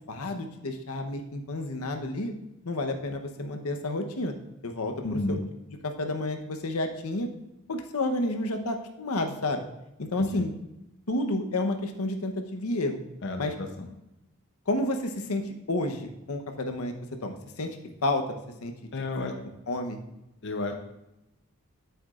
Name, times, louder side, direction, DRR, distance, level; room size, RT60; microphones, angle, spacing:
voice 1, 0.1-2.3 2.6-4.3 4.6-5.4 5.8-7.3 7.7-9.6 10.0-10.5 11.1-13.0 13.4-13.5 14.7-16.9 17.2-17.8 18.0-18.7 19.7-20.0, left 2 dB, 85° left, 5 dB, 0.9 m, -30 dB
voice 2, 5.0-5.4 10.2-10.5 13.2-13.9 18.9-19.3 20.4-20.7, left 2 dB, 55° left, 4 dB, 0.7 m, -31 dB
9.3 x 8.0 x 2.4 m, 0.90 s
head